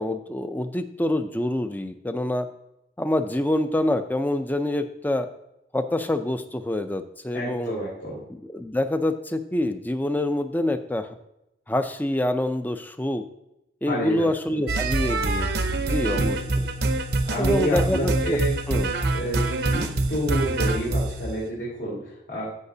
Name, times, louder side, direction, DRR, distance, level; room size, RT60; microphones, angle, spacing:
voice 1, 0.0-2.5 3.0-5.3 5.7-7.8 8.3-11.1 11.7-13.2 13.8-16.7 17.4-18.4 18.7-18.9, left 1 dB, 10° left, 9 dB, 0.5 m, -26 dB
voice 2, 7.3-8.2 13.9-14.3 16.1-16.3 17.3-18.6 19.1-22.4, right 1 dB, 75° left, -8 dB, 3.3 m, -29 dB
sound 1, 14.7-21.3, right 2 dB, 65° right, 0.7 m, -25 dB
15.0 x 5.8 x 2.7 m, 0.87 s
head